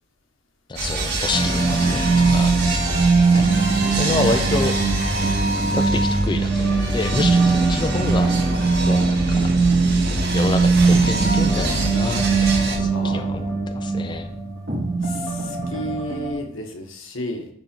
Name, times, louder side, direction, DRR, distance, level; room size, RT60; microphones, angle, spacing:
voice 1, 0.7-2.5 3.2-3.5 3.9-4.8 5.7-8.5 8.9-9.5 10.3-12.5 12.8-14.3, left 3 dB, 25° left, 7 dB, 0.4 m, -28 dB
sound 1, 0.8-12.8, right 1 dB, 60° right, 1.7 m, -26 dB
sound 2, 1.3-16.3, right 4 dB, 80° right, 2.5 m, -21 dB
voice 2, 12.9-13.4 15.0-17.5, equal, 80° left, 3 dB, 1.4 m, -32 dB
9.7 x 4.1 x 4.5 m, 0.67 s
head